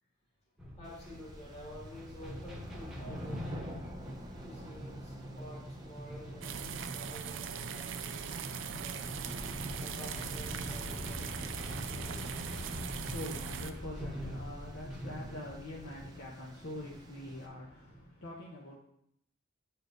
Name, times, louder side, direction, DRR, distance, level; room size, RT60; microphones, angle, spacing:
sound 1, 0.6-18.1, equal, 5° right, 1.0 m, -44 dB
voice 1, 0.8-3.8 4.4-8.4 8.8-9.3 9.8-12.3, equal, 30° left, -7 dB, 2.0 m, -50 dB
sound 2, 0.8-17.5, right 1 dB, 20° right, 0.6 m, -54 dB
sound 3, 6.4-13.7, right 7 dB, 70° right, 0.4 m, -40 dB
voice 2, 12.6-18.8, left 1 dB, 65° left, -4 dB, 0.9 m, -44 dB
9.5 x 4.4 x 2.6 m, 0.76 s
head